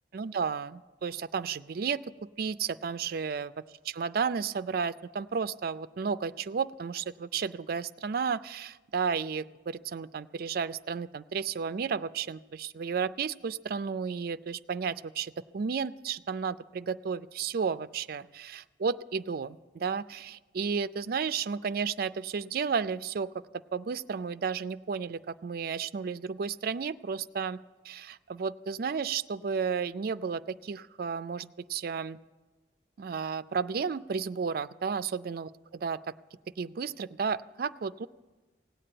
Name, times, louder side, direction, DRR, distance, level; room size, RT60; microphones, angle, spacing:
voice 1, 0.1-2.0 2.4-3.5 3.9-23.3 23.7-32.2 33.0-36.0 36.6-38.1, right 6 dB, 55° right, 14 dB, 0.4 m, -33 dB
17.5 x 8.5 x 8.8 m, 1.2 s
head